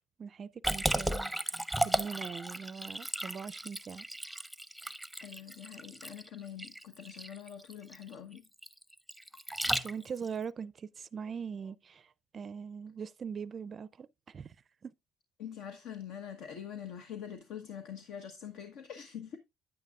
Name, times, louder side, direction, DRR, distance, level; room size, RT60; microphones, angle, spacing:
voice 1, 0.2-1.3 1.8-4.1 9.8-14.6 14.8-14.9, right 6 dB, 40° right, 0.4 m, -41 dB
Liquid, 0.6-10.3, right 1 dB, ahead, 0.7 m, -35 dB
voice 2, 5.2-8.4 15.4-19.4, left 9 dB, 70° left, 1.1 m, -44 dB
9.6 x 9.0 x 2.4 m
supercardioid pair, 80°, 0 cm